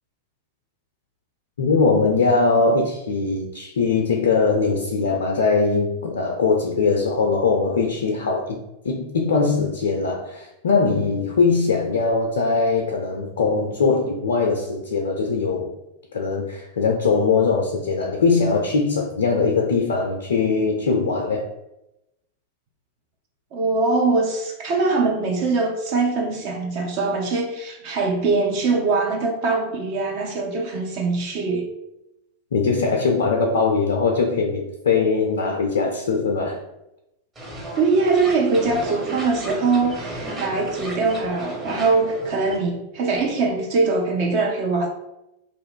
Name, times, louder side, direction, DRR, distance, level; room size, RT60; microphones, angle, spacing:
voice 1, 1.6-8.6 8.8-15.7 16.1-21.5 32.5-36.6, left 4 dB, 65° left, 0.4 m, -21 dB
voice 2, 23.5-31.7 37.7-44.9, right 3 dB, 45° right, 0.5 m, -22 dB
sound 1, 37.4-42.6, right 1 dB, 20° right, 1.0 m, -34 dB
2.5 x 2.3 x 3.5 m
figure-of-eight pair, 90°, 0 cm